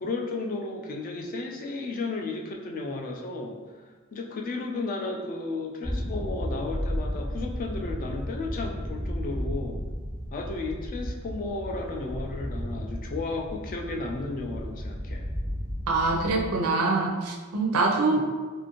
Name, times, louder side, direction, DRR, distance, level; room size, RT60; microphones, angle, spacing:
voice 1, 0.0-3.6 4.1-9.8 10.3-15.3 17.9-18.2, left 3 dB, 40° left, 1 dB, 0.3 m, -33 dB
sound 1, 5.8-16.5, equal, 10° left, 0.8 m, -34 dB
voice 2, 15.9-18.2, right 3 dB, 80° right, 1 dB, 0.4 m, -24 dB
2.5 x 2.5 x 2.9 m, 1.4 s
head